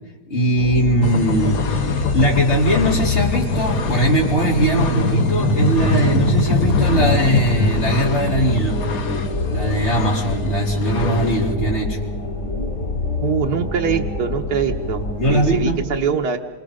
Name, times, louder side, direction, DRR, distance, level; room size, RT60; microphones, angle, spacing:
voice 1, 0.3-1.6 1.9-8.8 9.5-12.0 15.2-15.9, right 1 dB, 40° left, -3 dB, 4.6 m, -20 dB
sound 1, 0.6-15.7, left 1 dB, 85° left, 3.4 m, -25 dB
sound 2, 1.0-11.5, left 4 dB, 65° left, 1.6 m, -23 dB
voice 2, 13.2-15.0 15.3-16.4, right 7 dB, 80° right, 1 dB, 1.7 m, -23 dB
28.5 x 25.5 x 5.1 m, 1.3 s
omnidirectional pair, 1.7 m